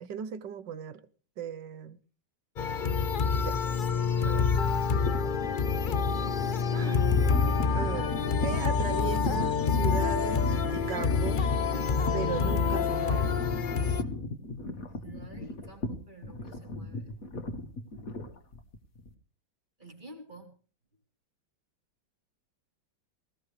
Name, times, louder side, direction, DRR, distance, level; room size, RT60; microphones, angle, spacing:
voice 1, 0.0-1.0 1.4-2.0 3.4-3.6 4.2-4.5 6.7-7.1 7.7-11.5 12.1-13.4, right 8 dB, 65° right, 1.5 m, -37 dB
sound 1, 2.6-14.0, left 5 dB, 75° left, 0.4 m, -27 dB
sound 2, 5.1-19.1, left 2 dB, 45° left, 2.0 m, -38 dB
voice 2, 7.9-8.4 15.0-17.1 19.8-20.5, right 2 dB, 20° right, 4.1 m, -50 dB
19.5 x 18.5 x 3.3 m
omnidirectional pair, 2.2 m